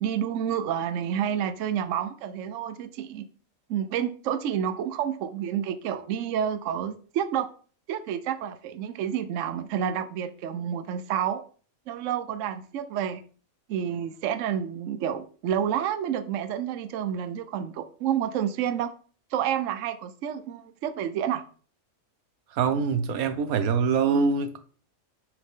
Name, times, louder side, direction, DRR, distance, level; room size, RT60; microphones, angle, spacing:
voice 1, 0.0-3.2 3.7-7.5 7.9-11.4 11.9-13.2 13.7-18.9 19.3-21.4, right 9 dB, 70° right, 0.9 m, -29 dB
voice 2, 22.5-24.6, right 5 dB, 90° right, 1.2 m, -24 dB
6.5 x 4.9 x 3.7 m
omnidirectional pair, 1.5 m